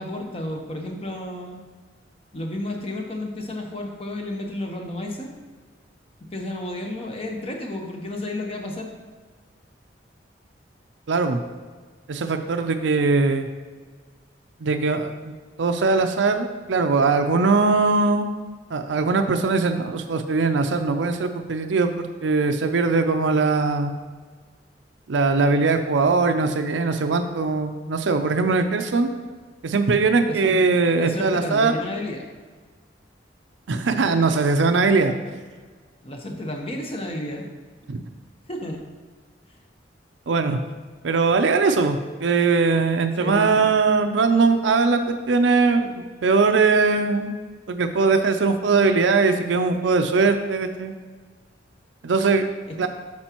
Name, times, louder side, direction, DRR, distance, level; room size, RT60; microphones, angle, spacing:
voice 1, 0.0-1.6 2.3-5.3 6.3-8.9 30.3-30.7 31.0-32.3 36.0-37.5 38.5-38.8 39.5-39.6 43.2-43.7 52.8-52.9, left 1 dB, 30° left, 2 dB, 1.0 m, -32 dB
voice 2, 11.1-11.4 12.1-13.5 14.6-15.1 15.6-18.3 18.7-23.9 25.1-29.1 29.6-31.7 33.7-35.1 37.9-38.0 40.3-40.6 41.0-45.9 46.2-47.3 47.7-50.9 52.0-52.4 52.8-52.9, right 4 dB, 80° right, 6 dB, 0.5 m, -20 dB
8.6 x 6.1 x 3.0 m, 1.5 s
head